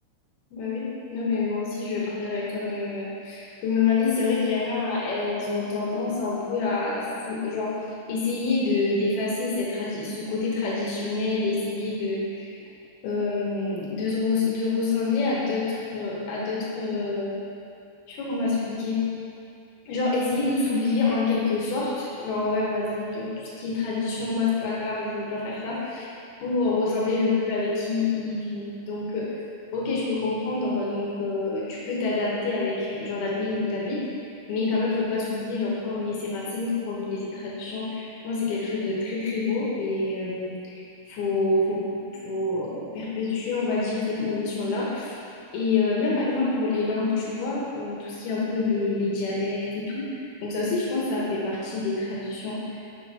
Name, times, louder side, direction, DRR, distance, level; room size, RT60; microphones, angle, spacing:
voice 1, 0.5-7.7 8.1-12.5 13.0-17.3 18.1-19.0 19.9-26.1 26.4-29.2 29.7-41.8 42.2-45.2 45.5-52.8, left 3 dB, 70° left, -6 dB, 2.5 m, -27 dB
7.8 x 6.8 x 4.3 m, 2.6 s
omnidirectional pair, 5.9 m